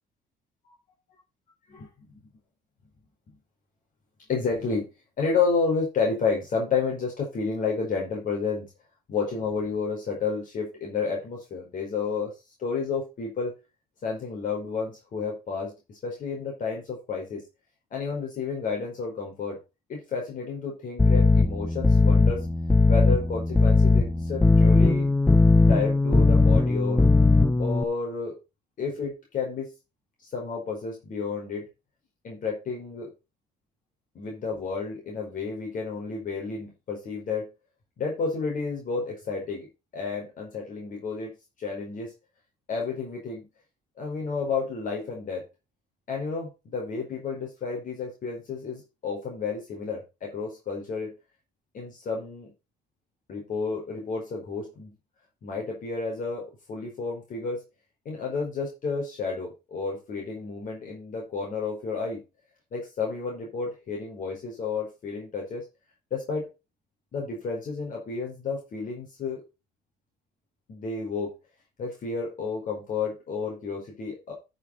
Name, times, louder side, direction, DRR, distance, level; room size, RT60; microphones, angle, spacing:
voice 1, 1.8-2.2 4.3-4.9 5.2-8.7 9.1-12.3 12.6-13.5 14.0-17.4 17.9-19.6 19.9-22.4 22.9-25.1 25.7-27.0 27.6-28.3 28.8-29.7 30.3-31.6 32.2-33.1 34.1-37.5 38.0-39.7 39.9-42.1 42.7-43.5 44.0-45.4 46.1-51.1 51.7-52.5 53.3-54.9 55.4-57.6 58.0-62.2 62.7-65.6 66.1-66.5 67.1-69.4 70.7-71.3 71.8-74.3, left 4 dB, 50° left, -1 dB, 5.0 m, -31 dB
sound 1, 21.0-27.8, left 2 dB, 10° left, 0.7 m, -19 dB
11.0 x 6.9 x 4.0 m, 0.27 s
cardioid pair, 110°, 17 cm